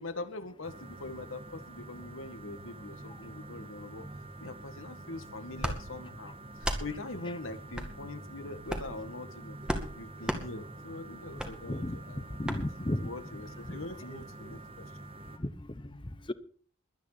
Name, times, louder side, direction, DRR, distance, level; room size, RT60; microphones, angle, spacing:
voice 1, 0.0-4.1 4.4-6.3 6.6-9.6 9.9-12.4 13.0-14.9 15.9-16.2, left 2 dB, 90° left, 1.9 m, -43 dB
sound 1, 0.6-15.4, right 2 dB, 30° right, 1.5 m, -47 dB
sound 2, 5.6-5.8 6.6-6.8 7.7-7.9 8.6-9.0 9.7-9.9 10.2-10.4 11.4-11.5 12.4-12.6, equal, 5° right, 2.1 m, -32 dB
voice 2, 11.7-13.1 13.7-13.8 15.4-15.8 16.3-16.4, left 1 dB, 25° left, 0.9 m, -34 dB
22.0 x 9.6 x 4.1 m
head